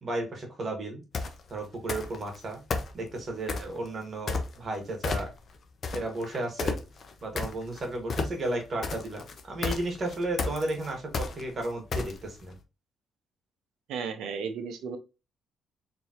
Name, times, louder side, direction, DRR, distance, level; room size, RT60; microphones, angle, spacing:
voice 1, 0.0-1.0 1.5-2.6 2.9-5.3 5.9-6.8 7.2-12.5, right 2 dB, 40° right, 3 dB, 1.7 m, -33 dB
sound 1, 1.1-1.4 1.9-2.4 2.7-3.8 4.3-4.8 5.0-5.5 5.8-12.4, left 4 dB, 50° left, 0.8 m, -32 dB
voice 2, 13.9-15.0, right 6 dB, 85° right, 8 dB, 0.8 m, -34 dB
4.0 x 3.4 x 3.0 m, 0.29 s
cardioid pair, 90°, 0 cm